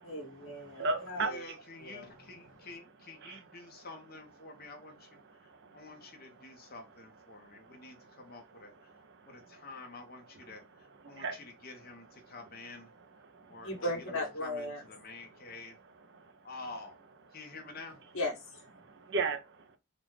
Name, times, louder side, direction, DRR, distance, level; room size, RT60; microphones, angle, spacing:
voice 1, 0.0-1.4 1.8-2.0 13.6-14.8 18.1-18.7, left 1 dB, 65° left, 1.5 m, -37 dB
voice 2, 0.6-1.3 3.2-3.4 5.5-5.8 9.2-9.3 11.0-11.4 13.3-13.6 16.2-16.3 18.8-19.8, right 3 dB, 50° right, 0.5 m, -35 dB
voice 3, 1.2-12.9 13.5-15.8 16.4-17.0 17.3-18.0, left 3 dB, 45° left, 1.0 m, -49 dB
3.9 x 2.4 x 3.1 m
head